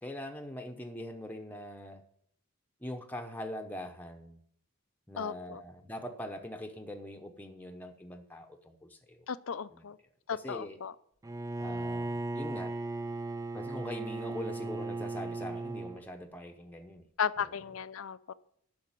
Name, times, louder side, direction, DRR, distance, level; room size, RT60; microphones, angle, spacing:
voice 1, 0.0-2.0 2.8-4.4 5.1-9.2 9.7-9.9 10.3-10.8 11.6-12.8 13.5-17.1 17.4-17.5, left 1 dB, 10° left, 4 dB, 0.8 m, -42 dB
voice 2, 5.2-5.6 9.3-10.0 10.3-10.9 17.2-18.3, left 7 dB, 65° left, 16 dB, 0.5 m, -35 dB
Bowed string instrument, 11.2-16.0, right 2 dB, 15° right, 0.4 m, -36 dB
10.5 x 6.4 x 8.9 m, 0.66 s
head